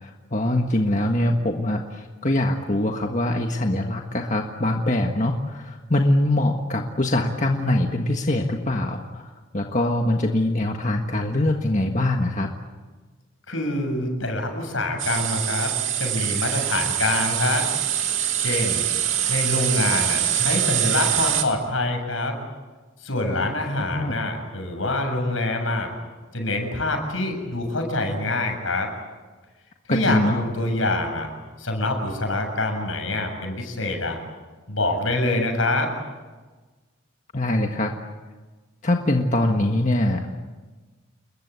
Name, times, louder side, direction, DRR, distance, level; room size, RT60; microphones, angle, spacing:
voice 1, 0.0-12.5 23.3-23.5 23.8-24.1 29.9-30.4 37.3-37.9 38.8-40.4, left 1 dB, 35° left, 2 dB, 1.6 m, -23 dB
voice 2, 13.5-15.7 16.0-17.6 18.4-18.9 19.3-22.4 23.0-25.9 26.3-28.9 29.9-31.3 31.6-34.2 34.7-35.9, left 2 dB, 75° left, 4 dB, 7.3 m, -25 dB
sound 1, 15.0-21.4, right 11 dB, 75° right, 2.8 m, -24 dB
29.0 x 22.0 x 8.5 m, 1.3 s
head